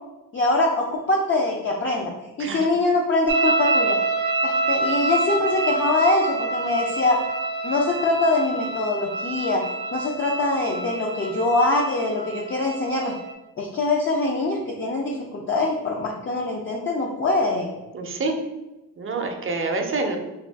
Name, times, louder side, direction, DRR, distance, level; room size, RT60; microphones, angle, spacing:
voice 1, 0.3-2.1 2.4-4.0 4.4-7.2 7.6-9.6 9.9-13.2 13.6-17.7, left 2 dB, 35° left, -2 dB, 0.4 m, -23 dB
sound 1, 3.3-13.3, right 3 dB, 85° right, 0.6 m, -26 dB
voice 2, 17.9-18.4 19.0-20.2, right 3 dB, 35° right, 3 dB, 0.5 m, -27 dB
3.5 x 2.3 x 3.3 m, 1.0 s
wide cardioid pair, 110°, 37 cm